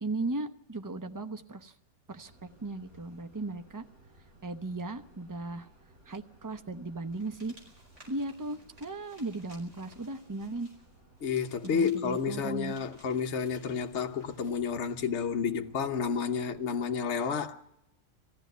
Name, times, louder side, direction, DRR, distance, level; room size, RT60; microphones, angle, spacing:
voice 1, 0.0-1.7 2.1-3.9 4.4-5.7 6.1-7.5 8.1-10.7 11.6-12.7, right 2 dB, 20° right, 0.5 m, -37 dB
sound 1, 2.2-16.8, right 2 dB, 60° right, 5.9 m, -60 dB
sound 2, 7.1-14.6, right 1 dB, 45° right, 5.2 m, -59 dB
voice 2, 11.2-17.6, left 6 dB, 50° left, 1.1 m, -30 dB
19.5 x 15.0 x 9.2 m
omnidirectional pair, 1.8 m